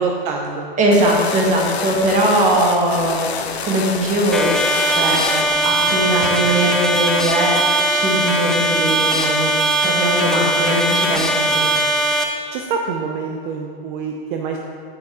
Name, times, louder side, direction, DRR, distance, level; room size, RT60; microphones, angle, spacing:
voice 1, 0.0-0.7 12.5-14.6, right 5 dB, 50° right, 1 dB, 0.9 m, -25 dB
voice 2, 0.8-3.3 3.6-4.5 4.9-5.2 5.6-9.5 9.8-11.6, right 1 dB, 25° right, -1 dB, 1.7 m, -20 dB
sound 1, 0.9-6.4, left 6 dB, 90° left, 1.0 m, -29 dB
sound 2, 4.3-12.2, right 1 dB, ahead, 0.5 m, -19 dB
8.8 x 6.3 x 4.8 m, 2.2 s
hypercardioid pair, 130°, 31 cm